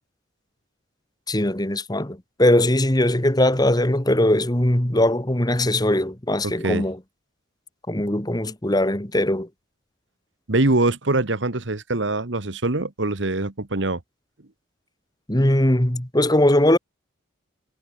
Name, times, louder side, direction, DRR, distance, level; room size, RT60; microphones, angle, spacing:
voice 1, 1.3-7.0 7.9-9.5 15.3-16.8, left 1 dB, 20° left, 1.9 m, -20 dB
voice 2, 6.4-6.8 10.5-14.0, right 2 dB, 65° right, 1.5 m, -23 dB
head